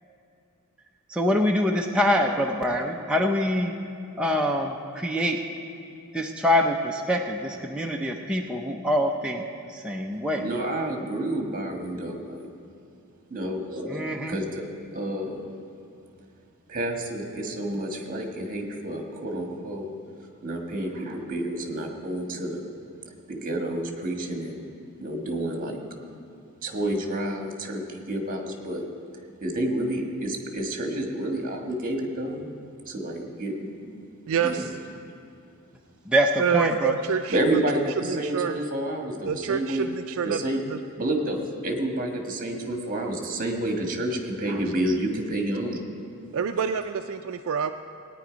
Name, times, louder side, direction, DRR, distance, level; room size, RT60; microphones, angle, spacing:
voice 1, 1.1-3.7 4.2-5.4 6.1-9.4 9.7-10.4 13.9-14.4 36.1-36.9, equal, 5° right, 0 dB, 0.6 m, -24 dB
voice 2, 10.4-12.5 13.3-14.7 14.9-15.4 16.7-19.9 20.4-22.6 23.3-24.6 25.0-25.8 26.6-28.8 29.4-32.5 32.9-33.9 34.4-34.6 37.3-37.8 38.2-39.9 40.2-40.6 41.0-45.8, right 1 dB, 40° right, 3 dB, 1.6 m, -29 dB
voice 3, 34.3-34.8 36.4-37.4 38.0-38.6 39.3-40.8 46.3-47.7, right 7 dB, 65° right, 7 dB, 0.4 m, -27 dB
18.0 x 9.6 x 5.1 m, 2.5 s
head